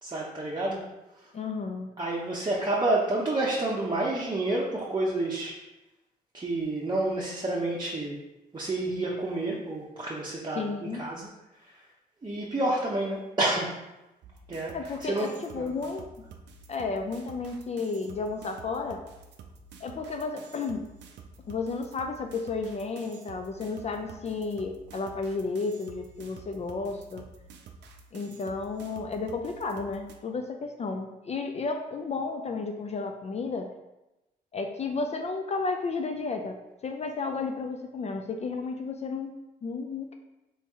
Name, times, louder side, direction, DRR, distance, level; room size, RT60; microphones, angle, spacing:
voice 1, 0.0-0.8 2.0-5.6 6.3-8.2 8.5-11.3 12.2-13.7 14.5-14.7 15.0-15.3 15.6-15.7, right 2 dB, 25° right, -5 dB, 0.7 m, -29 dB
voice 2, 1.3-1.9 8.9-9.1 10.5-11.1 14.7-16.1 16.7-19.0 19.8-20.9 21.5-27.3 28.1-33.7 34.5-36.6 36.8-39.3 39.6-40.2, left 4 dB, 35° left, 4 dB, 0.4 m, -32 dB
sound 1, 14.2-30.2, right 5 dB, 75° right, 0.4 m, -50 dB
3.0 x 2.8 x 3.5 m, 0.98 s
supercardioid pair, 60°, 18 cm